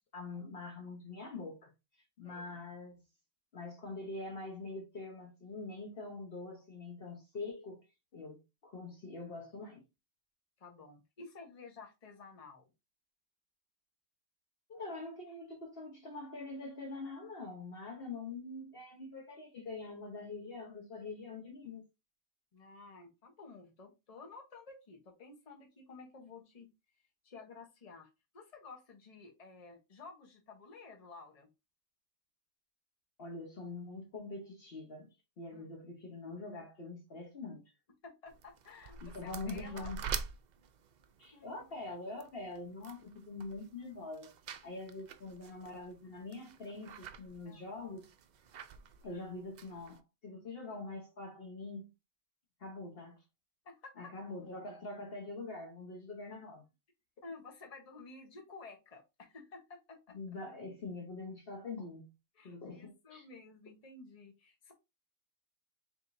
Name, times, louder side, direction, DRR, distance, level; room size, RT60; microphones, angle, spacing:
voice 1, 0.1-1.7 2.2-3.0 3.5-7.9 8.1-9.9 14.7-21.8 33.2-37.6 39.0-40.0 41.2-44.3 44.6-48.1 49.0-51.9 52.6-53.2 54.0-56.6 60.1-62.1 62.4-63.3, left 3 dB, 50° left, 1.1 m, -44 dB
voice 2, 10.6-12.7 22.5-26.7 27.2-28.1 28.3-31.5 35.5-35.6 38.0-39.9 41.3-41.7 47.4-47.6 53.6-53.9 57.2-59.0 59.3-60.2 62.4-64.7, left 4 dB, 30° left, 1.1 m, -52 dB
sound 1, 38.3-50.0, right 6 dB, 90° right, 0.3 m, -47 dB
4.9 x 3.5 x 2.6 m
omnidirectional pair, 1.3 m